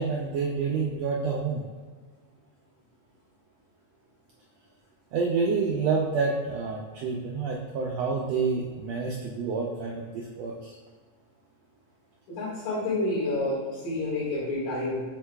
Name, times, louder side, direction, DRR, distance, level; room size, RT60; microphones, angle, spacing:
voice 1, 0.0-1.6 5.1-10.7, right 4 dB, 80° right, -2 dB, 1.5 m, -28 dB
voice 2, 12.3-13.6 13.8-15.0, left 2 dB, 85° left, -11 dB, 3.6 m, -29 dB
7.6 x 5.8 x 2.3 m, 1.5 s
omnidirectional pair, 3.6 m